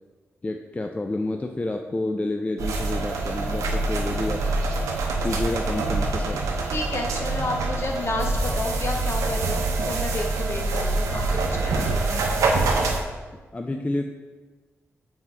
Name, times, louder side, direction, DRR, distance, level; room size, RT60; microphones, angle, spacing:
voice 1, 0.4-4.4 5.2-6.4 13.5-14.1, left 2 dB, 25° left, 4 dB, 0.4 m, -29 dB
sound 1, 2.6-13.0, right 3 dB, 90° right, 0.6 m, -25 dB
voice 2, 6.7-12.2, left 2 dB, 55° left, 1 dB, 1.1 m, -31 dB
6.0 x 4.4 x 4.2 m, 1.3 s
cardioid pair, 50°, 5 cm